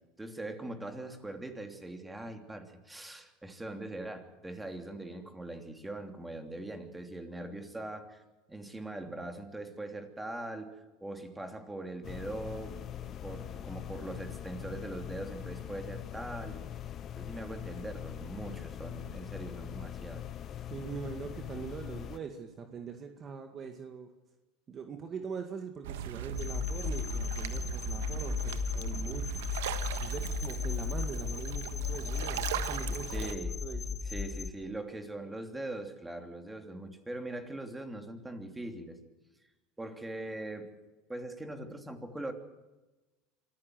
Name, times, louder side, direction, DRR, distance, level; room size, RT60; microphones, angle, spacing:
voice 1, 0.2-8.2 8.5-10.7 11.0-16.6 17.1-20.2 33.1-33.6 34.0-39.0 39.8-40.7 41.1-42.3, right 2 dB, 10° right, 5 dB, 3.1 m, -41 dB
sound 1, 12.0-22.2, left 10 dB, 40° left, 1.1 m, -42 dB
voice 2, 20.7-24.1 24.7-29.4 30.0-33.3 33.6-34.0, right 6 dB, 35° right, 6 dB, 2.0 m, -42 dB
sound 2, 25.8-33.3, right 10 dB, 85° right, 1.3 m, -38 dB
sound 3, 26.4-34.5, left 6 dB, 20° left, 2.1 m, -35 dB
25.5 x 14.5 x 7.9 m, 1.1 s
supercardioid pair, 105°, 0 cm